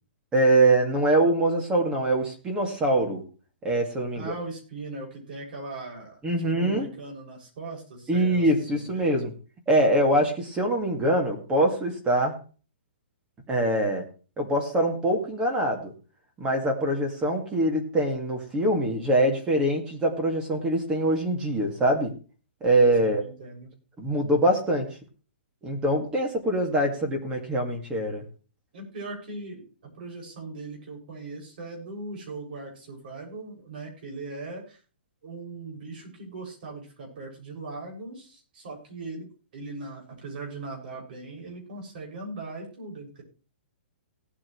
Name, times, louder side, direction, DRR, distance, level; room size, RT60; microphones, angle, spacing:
voice 1, 0.3-3.2 3.6-4.3 6.2-6.9 8.1-9.3 9.7-12.3 13.5-14.0 14.4-15.9 16.4-22.1 22.6-23.2 24.0-24.9 25.6-28.2, right 1 dB, 15° right, 3 dB, 2.3 m, -23 dB
voice 2, 4.1-9.2 23.0-23.7 28.7-34.8 35.2-39.3 39.5-43.2, right 3 dB, 50° right, 1 dB, 6.8 m, -39 dB
18.0 x 8.9 x 3.3 m, 0.37 s
hypercardioid pair, 160°, 6 cm